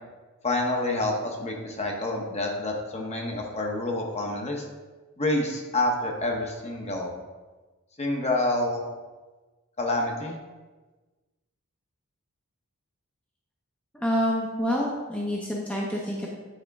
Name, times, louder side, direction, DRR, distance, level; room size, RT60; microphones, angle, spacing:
voice 1, 0.4-4.6 5.2-7.1 8.0-8.8 9.8-10.4, left 2 dB, 30° left, 0 dB, 1.0 m, -28 dB
voice 2, 13.9-16.3, equal, 5° left, -4 dB, 0.7 m, -27 dB
9.2 x 4.3 x 3.5 m, 1.3 s
head